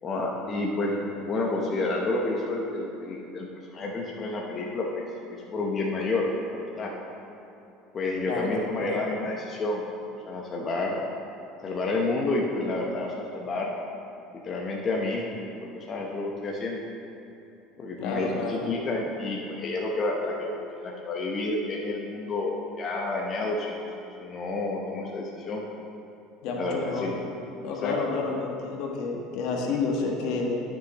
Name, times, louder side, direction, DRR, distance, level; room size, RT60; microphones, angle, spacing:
voice 1, 0.0-6.3 6.5-6.9 7.9-9.8 10.2-11.0 11.6-13.7 14.4-15.3 15.6-16.8 17.8-23.8 24.2-25.6 26.5-27.2 27.8-28.1, left 2 dB, 35° left, -2 dB, 1.0 m, -30 dB
voice 2, 8.3-8.9 18.0-18.6 26.4-27.1 27.6-30.6, left 4 dB, 65° left, 0 dB, 1.4 m, -30 dB
13.0 x 6.3 x 3.1 m, 2.8 s
supercardioid pair, 95°, 0 cm